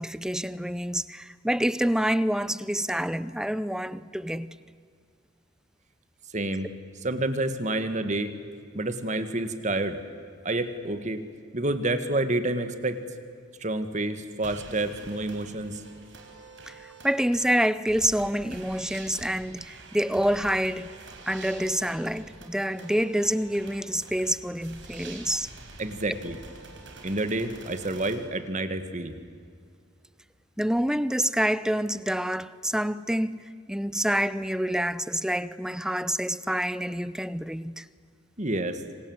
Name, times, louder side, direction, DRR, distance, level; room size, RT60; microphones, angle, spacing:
voice 1, 0.0-4.6 16.7-16.8 17.0-20.9 21.3-25.5 30.6-37.8, equal, 5° right, 0.6 m, -27 dB
voice 2, 6.3-6.7 7.0-8.4 8.7-10.0 10.4-11.2 11.5-13.0 13.6-15.8 25.0-25.1 25.8-26.4 27.0-29.2 38.4-38.8, right 2 dB, 40° right, 1.8 m, -29 dB
sound 1, 14.4-28.2, right 3 dB, 70° right, 4.9 m, -46 dB
27.0 x 26.0 x 8.0 m
head